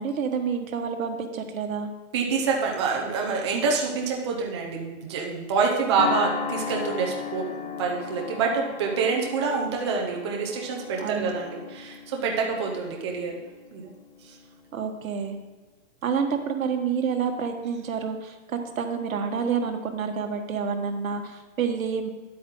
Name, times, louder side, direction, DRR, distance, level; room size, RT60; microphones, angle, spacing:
voice 1, 0.0-1.9 11.0-11.3 14.7-15.4 16.0-22.1, right 6 dB, 80° right, 5 dB, 1.5 m, -28 dB
voice 2, 2.1-13.4 13.7-13.9 14.2-14.4, right 5 dB, 20° right, -1 dB, 0.7 m, -27 dB
sound 1, 6.0-14.5, left 6 dB, 35° left, 0.8 m, -36 dB
10.0 x 8.5 x 3.8 m, 1.3 s
hypercardioid pair, 175°, 40 cm